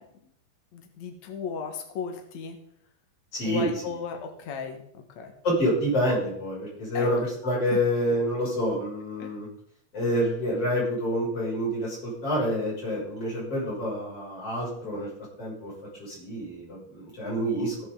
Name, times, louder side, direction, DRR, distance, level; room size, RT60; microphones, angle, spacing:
voice 1, 0.7-2.6 3.4-5.3 6.9-7.1 7.7-7.8 9.2-9.3, left 6 dB, 90° left, 4 dB, 1.5 m, -35 dB
voice 2, 3.3-3.7 5.4-9.5 9.9-15.1 15.4-15.7 16.0-17.9, equal, 30° left, -5 dB, 7.4 m, -27 dB
16.0 x 10.5 x 3.9 m, 0.67 s
omnidirectional pair, 5.8 m